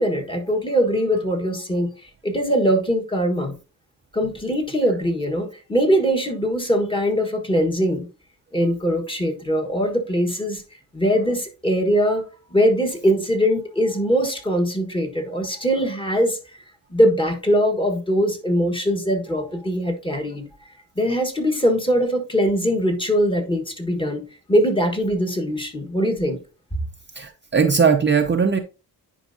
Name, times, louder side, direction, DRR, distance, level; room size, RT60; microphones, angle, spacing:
voice 1, 0.0-3.5 4.1-8.1 8.5-10.6 10.9-12.2 12.5-16.4 16.9-20.4 20.9-24.2 24.5-26.4, equal, 15° left, 1.4 m, -21 dB
voice 2, 27.2-28.6, right 6 dB, 30° right, 0.6 m, -19 dB
10.0 x 4.7 x 2.7 m
cardioid pair, 115°, 38 cm